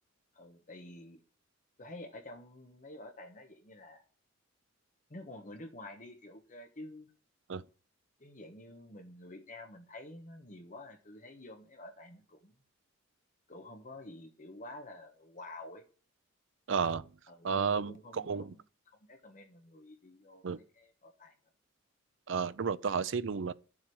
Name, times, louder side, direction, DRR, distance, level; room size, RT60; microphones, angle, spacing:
voice 1, 0.3-1.2 1.8-4.0 5.1-7.1 8.2-12.5 13.5-15.8 17.3-18.6 18.9-21.3, left 1 dB, 40° left, 1.3 m, -49 dB
voice 2, 16.7-17.1 17.4-18.5 20.4-20.6 22.3-23.5, right 5 dB, 70° right, 0.5 m, -32 dB
12.0 x 7.4 x 4.8 m
head